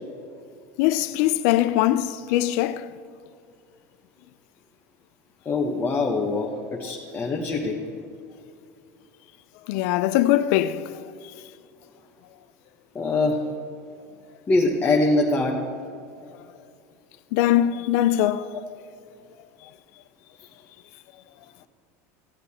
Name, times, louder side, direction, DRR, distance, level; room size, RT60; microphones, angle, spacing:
voice 1, 0.8-2.9 9.7-11.0 17.3-18.6 19.6-19.7, left 13 dB, 70° left, 0.5 m, -22 dB
voice 2, 5.4-7.8 12.9-13.4 14.5-15.6, left 3 dB, 25° left, 1.1 m, -23 dB
14.5 x 8.2 x 4.2 m
supercardioid pair, 115°, 9 cm